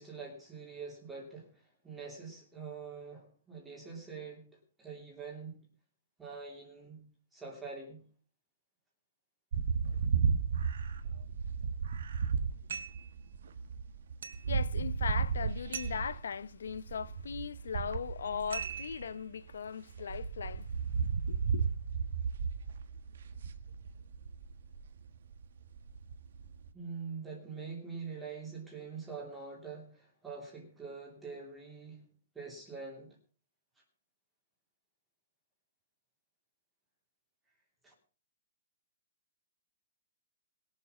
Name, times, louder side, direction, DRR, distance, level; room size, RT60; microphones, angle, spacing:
voice 1, 0.0-4.5 4.8-5.6 6.2-7.1 7.3-8.0 26.7-32.1 32.3-33.2 37.8-37.9, right 5 dB, 5° right, 3.0 m, -45 dB
sound 1, 9.5-19.6 19.9-26.7, right 6 dB, 55° right, 1.5 m, -34 dB
sound 2, 12.7-13.1 14.2-14.5 15.7-16.1 18.5-19.1, right 7 dB, 75° right, 3.0 m, -41 dB
voice 2, 14.4-20.6 21.3-21.7, left 6 dB, 85° left, 0.7 m, -38 dB
20.5 x 7.4 x 5.6 m
hypercardioid pair, 180°, 0 cm